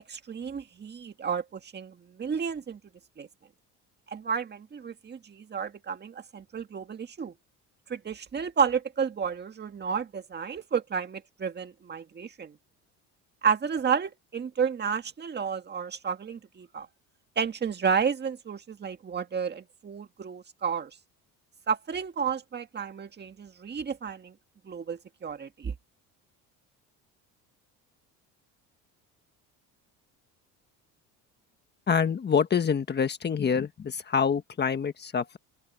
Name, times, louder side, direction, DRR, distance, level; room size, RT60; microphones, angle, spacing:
voice 1, 0.1-2.8 3.2-3.3 4.1-7.3 7.9-12.5 13.4-16.9 17.4-20.9 21.7-24.3 24.7-25.7, right 6 dB, 30° right, 1.8 m, -31 dB
voice 2, 31.9-35.4, left 6 dB, 30° left, 1.5 m, -26 dB
open air
cardioid pair, 120°, 35 cm